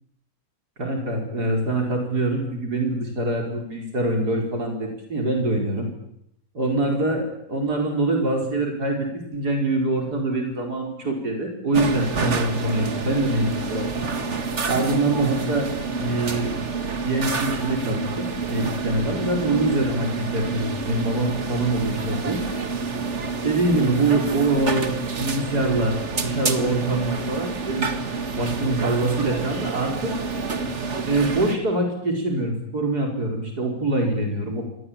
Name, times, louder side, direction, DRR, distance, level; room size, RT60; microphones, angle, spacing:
voice 1, 0.8-5.9 6.5-14.3 14.7-15.7 16.0-16.5 17.0-22.4 23.4-27.9 28.4-30.1 31.1-34.6, right 2 dB, 85° right, 2 dB, 5.3 m, -24 dB
sound 1, 11.7-31.6, right 4 dB, 45° right, 2.2 m, -28 dB
26.5 x 21.5 x 8.8 m, 0.76 s
omnidirectional pair, 1.7 m